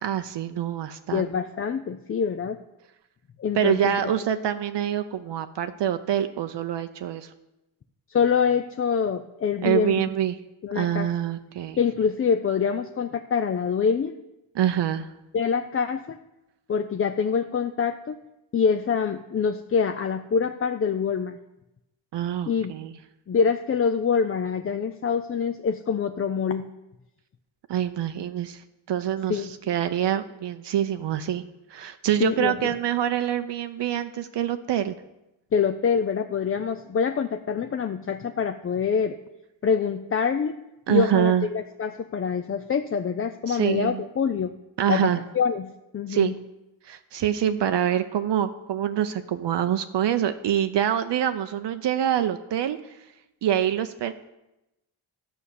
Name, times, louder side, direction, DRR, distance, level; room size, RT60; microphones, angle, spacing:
voice 1, 0.0-1.2 3.6-7.3 9.6-10.4 10.7-11.8 14.6-15.1 22.1-22.9 27.7-31.4 31.7-34.9 40.9-41.5 43.5-44.0 44.8-45.2 46.1-46.3 46.8-53.0 53.4-54.1, right 10 dB, 60° right, 9 dB, 0.7 m, -25 dB
voice 2, 1.1-2.6 3.4-4.1 8.1-10.1 10.6-11.1 11.8-14.1 15.3-16.2 16.7-18.2 18.5-21.4 22.5-22.7 23.3-26.7 29.3-29.5 32.2-32.7 35.5-39.2 39.6-40.6 40.9-44.5 44.9-46.3, left 6 dB, 30° left, 8 dB, 0.4 m, -25 dB
12.0 x 5.6 x 8.3 m, 0.95 s
cardioid pair, 115°, 47 cm